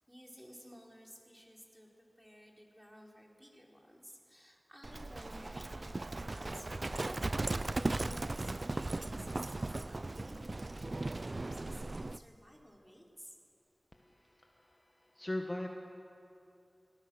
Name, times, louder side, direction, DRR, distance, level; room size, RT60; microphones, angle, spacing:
voice 1, 0.1-13.4, equal, ahead, -1 dB, 4.6 m, -55 dB
Livestock farm animals working animals, 4.8-12.2, right 2 dB, 50° right, 0.4 m, -37 dB
voice 2, 13.9-15.7, left 1 dB, 30° left, 2 dB, 1.7 m, -41 dB
26.0 x 18.0 x 6.5 m, 2.6 s
cardioid pair, 40°, 0 cm